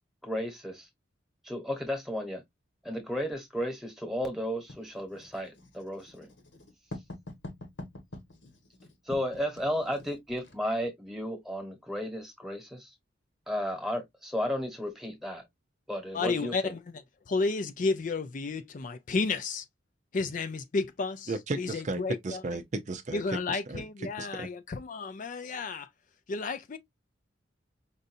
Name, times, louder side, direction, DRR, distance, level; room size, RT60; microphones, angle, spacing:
voice 1, 0.2-0.9 1.4-2.4 2.8-6.3 9.1-12.9 13.5-15.4 15.9-16.7, equal, ahead, 1.2 m, -33 dB
Writing, 4.7-10.6, left 1 dB, 75° left, 1.3 m, -46 dB
voice 2, 16.1-16.8 17.3-19.7 20.1-22.4 23.1-25.9 26.3-26.8, left 4 dB, 45° left, 0.4 m, -32 dB
voice 3, 21.3-23.8 24.2-24.5, right 2 dB, 40° right, 0.5 m, -35 dB
5.3 x 2.6 x 2.6 m
head